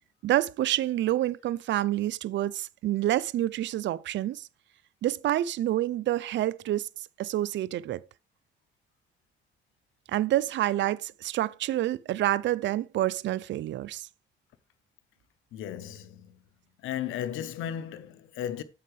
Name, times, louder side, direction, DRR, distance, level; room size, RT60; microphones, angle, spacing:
voice 1, 0.2-4.5 5.0-6.9 7.2-8.0 10.1-14.1, right 13 dB, 65° right, 0.5 m, -28 dB
voice 2, 15.5-16.4 16.8-18.6, left 10 dB, 90° left, 1.0 m, -35 dB
9.5 x 7.6 x 3.2 m
cardioid pair, 90°, 20 cm